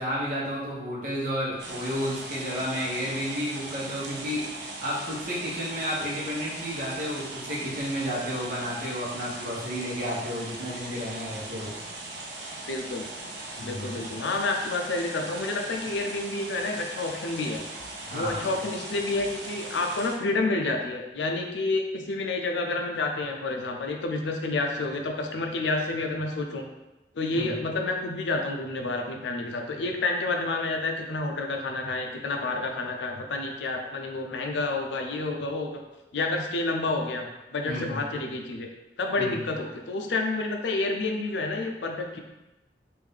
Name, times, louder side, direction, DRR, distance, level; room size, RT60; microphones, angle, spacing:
voice 1, 0.0-11.8 13.6-14.0 18.0-18.5 27.3-27.6 37.6-38.0 39.2-39.4, equal, 50° right, -6 dB, 1.1 m, -32 dB
sound 1, 1.6-20.1, right 2 dB, 70° right, 0.6 m, -39 dB
voice 2, 12.7-13.1 13.6-17.6 18.1-26.7 27.1-35.8 36.1-38.7 39.0-42.2, left 2 dB, 85° left, 3 dB, 0.5 m, -29 dB
3.2 x 2.6 x 3.6 m, 1.0 s
head